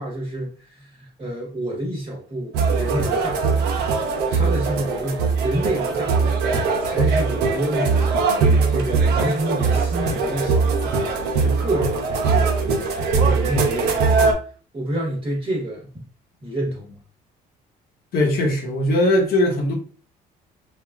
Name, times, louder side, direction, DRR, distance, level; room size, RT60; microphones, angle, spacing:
voice 1, 0.0-3.7 4.3-6.4 6.8-8.3 8.7-11.0 11.4-12.5 13.2-14.3 14.7-16.1 16.4-17.0, right 1 dB, 30° right, 1.1 m, -28 dB
sound 1, 2.5-14.3, right 4 dB, 80° right, 0.7 m, -21 dB
voice 2, 18.1-19.7, left 1 dB, 65° left, 1.0 m, -19 dB
3.4 x 2.3 x 2.3 m
cardioid pair, 110°, 17 cm